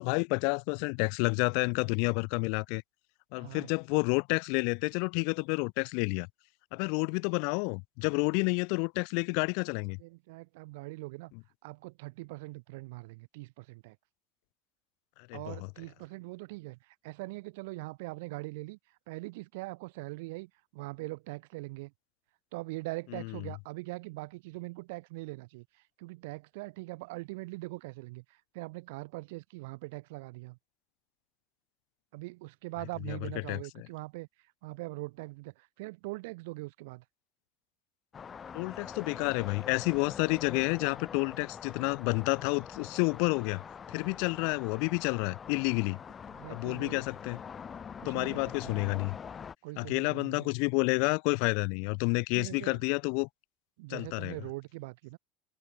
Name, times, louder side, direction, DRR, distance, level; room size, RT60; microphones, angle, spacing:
voice 1, 0.0-2.8 3.3-6.3 6.7-10.0 15.3-15.6 23.1-23.4 33.1-33.2 33.5-33.9 38.5-43.6 43.9-46.0 46.5-47.4 48.0-49.1 49.8-53.3 53.9-54.4, left 40 dB or more, 65° left, 0.6 m, -30 dB
voice 2, 3.4-3.7 10.0-11.3 11.6-14.0 15.3-18.8 19.1-21.9 22.5-30.6 32.1-34.3 34.6-37.0 46.3-47.0 48.0-48.9 49.6-50.5 52.3-52.8 53.8-55.2, right 23 dB, 80° right, 2.3 m, -42 dB
sound 1, 38.1-49.6, left 7 dB, 20° left, 1.2 m, -44 dB
cardioid pair, 155°, 0 cm